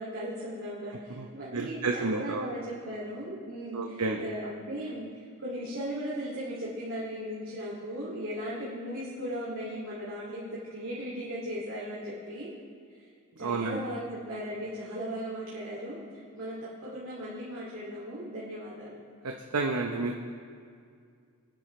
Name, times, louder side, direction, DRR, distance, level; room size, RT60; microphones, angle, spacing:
voice 1, 0.0-12.5 12.9-13.1 13.4-19.0, equal, 60° right, -8 dB, 2.4 m, -37 dB
voice 2, 1.5-2.4 3.7-4.2 13.4-13.8 19.2-20.2, right 3 dB, 90° right, 2 dB, 0.8 m, -30 dB
23.5 x 10.5 x 3.2 m, 2.2 s
head